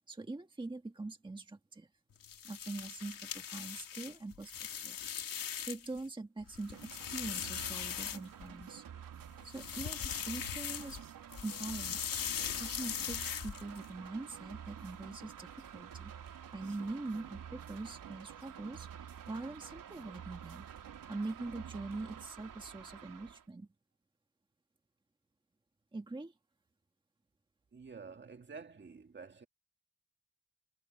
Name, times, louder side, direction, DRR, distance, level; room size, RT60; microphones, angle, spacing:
voice 1, 0.1-1.9 2.4-4.5 4.8-5.0 5.6-8.8 9.4-11.0 11.4-12.0 12.6-16.1 16.5-20.7 21.1-23.7 25.9-26.3, right 2 dB, 15° right, 1.7 m, -43 dB
sound 1, 2.2-6.0 6.4-8.6 9.4-11.0 11.3-13.8, left 8 dB, 75° left, 2.9 m, -40 dB
sound 2, 6.4-23.5, right 8 dB, 70° right, 3.5 m, -54 dB
sound 3, 6.7-22.3, right 9 dB, 90° right, 3.1 m, -51 dB
voice 2, 27.7-29.5, right 5 dB, 35° right, 2.0 m, -49 dB
wide cardioid pair, 145°, 33 cm